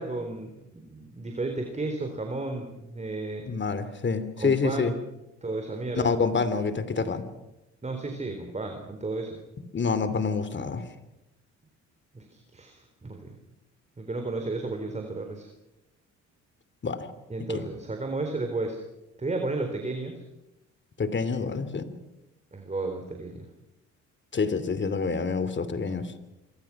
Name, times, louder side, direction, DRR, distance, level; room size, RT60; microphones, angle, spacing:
voice 1, 0.0-3.5 4.4-5.0 5.4-6.1 7.8-9.4 12.1-13.3 14.0-15.5 17.3-18.8 19.2-20.2 22.5-23.5, right 2 dB, 25° right, 4 dB, 4.0 m, -33 dB
voice 2, 3.5-4.9 5.9-7.3 9.7-10.8 16.8-17.1 17.5-17.7 21.0-21.9 24.3-26.1, left 4 dB, 40° left, 13 dB, 2.8 m, -27 dB
27.0 x 23.5 x 6.1 m, 0.94 s
cardioid pair, 90°, 30 cm